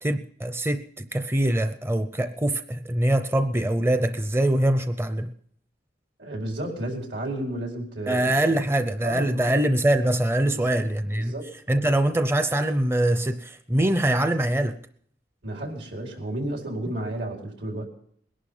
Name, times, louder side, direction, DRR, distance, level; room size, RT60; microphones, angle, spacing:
voice 1, 0.0-5.3 8.1-11.3 11.7-14.8, right 1 dB, 15° right, 0.6 m, -23 dB
voice 2, 6.2-8.3 9.0-9.5 10.5-10.8 11.2-11.5 15.4-17.9, right 1 dB, 80° right, 4.8 m, -32 dB
21.0 x 11.5 x 5.5 m
head